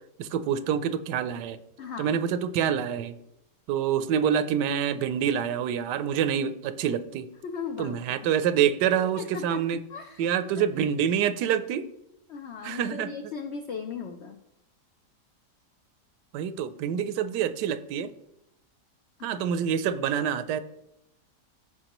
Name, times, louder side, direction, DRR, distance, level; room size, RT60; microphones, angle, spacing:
voice 1, 0.2-1.6 2.0-3.2 3.7-7.3 7.8-9.8 10.2-11.9 12.6-13.1 16.3-18.1 19.2-20.6, right 8 dB, 85° right, 12 dB, 1.2 m, -26 dB
voice 2, 1.8-2.2 7.4-8.3 9.0-10.3 10.5-10.7 12.3-14.4 19.2-19.4, left 6 dB, 80° left, 7 dB, 0.6 m, -38 dB
14.5 x 4.8 x 3.0 m, 0.82 s
omnidirectional pair, 1.8 m